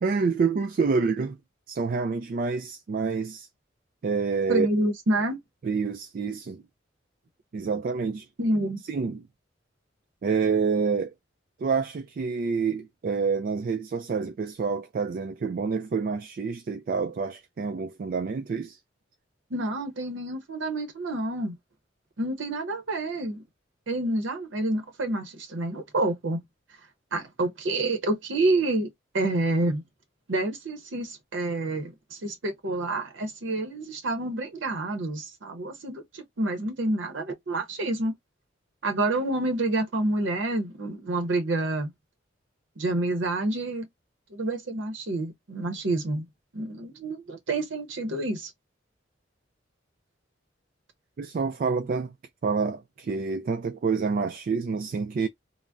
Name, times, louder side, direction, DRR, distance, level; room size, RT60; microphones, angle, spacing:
voice 1, 0.0-1.4 1.7-3.5 4.0-4.7 5.6-6.6 7.5-8.3 8.9-9.2 10.2-11.1 11.6-18.8 51.2-52.1 52.4-55.3, right 5 dB, 50° right, 0.3 m, -27 dB
voice 2, 4.5-5.4 8.4-8.8 19.5-21.6 22.2-23.4 23.9-26.4 27.1-28.9 29.1-29.8 30.3-38.1 38.8-41.9 42.8-43.9 44.3-46.2 46.5-48.5, right 2 dB, 85° right, 0.7 m, -28 dB
3.4 x 2.0 x 2.5 m
head